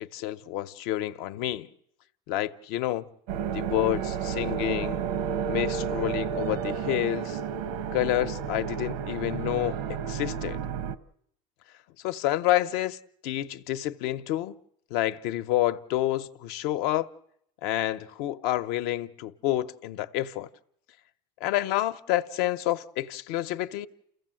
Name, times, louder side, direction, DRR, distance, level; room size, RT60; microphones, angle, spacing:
voice 1, 0.0-1.7 2.3-3.1 3.5-5.0 5.5-7.4 7.9-9.8 10.0-10.6 12.0-13.0 13.2-14.5 14.9-17.1 17.6-20.5 21.4-23.9, left 14 dB, 60° left, 0.8 m, -28 dB
sound 1, 3.3-11.0, right 7 dB, 90° right, 1.0 m, -31 dB
29.0 x 15.5 x 7.7 m
cardioid pair, 175°, 18 cm